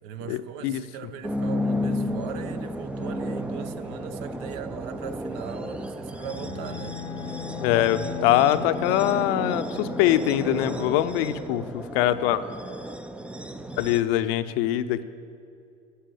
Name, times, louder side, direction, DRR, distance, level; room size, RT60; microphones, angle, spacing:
voice 1, 0.0-7.0 7.7-7.8, right 9 dB, 60° right, 0.8 m, -39 dB
sound 1, 1.2-14.0, equal, 5° right, 0.4 m, -33 dB
Bowed string instrument, 6.2-10.5, left 11 dB, 85° left, 0.9 m, -38 dB
voice 2, 7.6-12.4 13.8-15.0, left 12 dB, 60° left, 0.7 m, -23 dB
11.5 x 8.1 x 7.6 m
hypercardioid pair, 75°, 35 cm